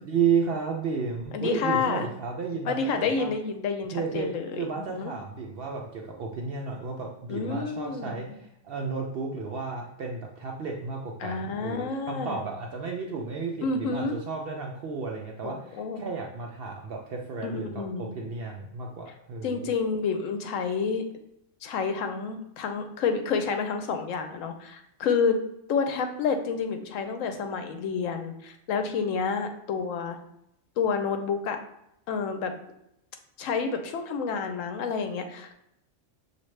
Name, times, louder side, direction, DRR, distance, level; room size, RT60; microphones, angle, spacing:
voice 1, 0.0-3.3 3.9-4.3 4.6-19.7, right 5 dB, 60° right, 0 dB, 0.7 m, -32 dB
voice 2, 1.3-2.1 2.7-5.1 7.3-8.2 11.2-12.4 13.6-14.1 15.4-16.0 17.4-18.1 19.4-21.1 21.6-25.4 25.7-30.2 30.8-31.6 32.1-32.5 33.4-35.5, left 5 dB, 85° left, 6 dB, 1.0 m, -29 dB
5.8 x 2.6 x 3.1 m, 0.80 s
omnidirectional pair, 1.3 m